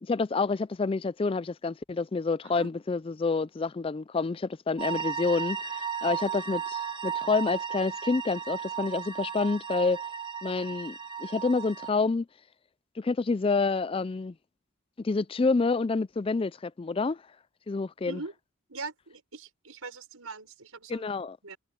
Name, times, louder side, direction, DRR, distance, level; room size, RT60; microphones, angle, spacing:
voice 1, 0.0-10.0 10.4-12.3 13.0-14.3 15.0-17.2 17.7-18.2 20.9-21.4, left 4 dB, 25° left, 0.3 m, -28 dB
sound 1, 4.8-11.9, right 7 dB, 20° right, 1.2 m, -35 dB
voice 2, 18.7-21.1 21.4-21.6, right 4 dB, 85° right, 5.3 m, -42 dB
head